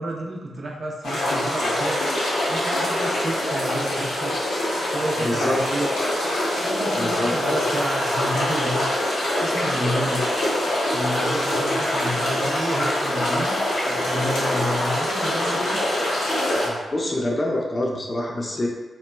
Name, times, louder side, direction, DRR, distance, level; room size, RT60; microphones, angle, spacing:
voice 1, 0.0-2.0 2.5-4.4 4.8-5.9 6.6-9.0 9.4-10.2 10.9-13.6 13.9-15.8, right 1 dB, 50° right, -1 dB, 0.5 m, -30 dB
sound 1, 1.0-16.7, left 1 dB, 85° left, 0.7 m, -24 dB
voice 2, 5.2-5.6 7.0-7.3 16.6-18.7, left 1 dB, 40° left, -1 dB, 0.5 m, -26 dB
2.9 x 2.1 x 2.2 m, 1.2 s
supercardioid pair, 40°, 0 cm